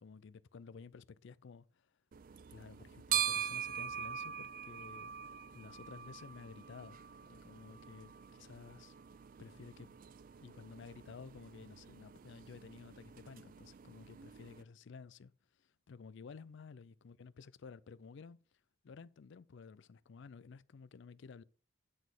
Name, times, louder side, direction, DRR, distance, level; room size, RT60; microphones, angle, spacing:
voice 1, 0.0-1.7 2.5-5.1 5.5-7.0 7.3-8.9 9.4-9.9 10.4-15.3 15.9-18.4 18.8-21.4, left 5 dB, 60° left, 0.4 m, -53 dB
sound 1, 2.1-14.6, right 9 dB, 40° right, 0.3 m, -43 dB
9.4 x 4.1 x 6.6 m
head